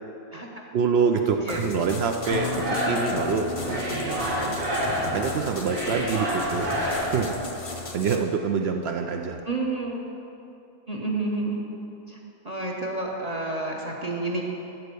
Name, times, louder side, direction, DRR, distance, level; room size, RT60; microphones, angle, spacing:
voice 1, 0.7-7.3 7.9-9.4, right 5 dB, 65° right, 4 dB, 0.6 m, -26 dB
sound 1, 1.5-8.2, left 2 dB, 35° left, 0.6 m, -37 dB
sound 2, 2.2-7.5, equal, 85° right, 2.5 m, -29 dB
Bass guitar, 2.3-8.6, left 13 dB, 85° left, 1.1 m, -39 dB
voice 2, 9.5-10.0 10.9-11.6 12.1-12.2 12.4-14.4, right 2 dB, 35° right, -1 dB, 0.8 m, -29 dB
12.5 x 4.5 x 6.8 m, 2.8 s
omnidirectional pair, 1.6 m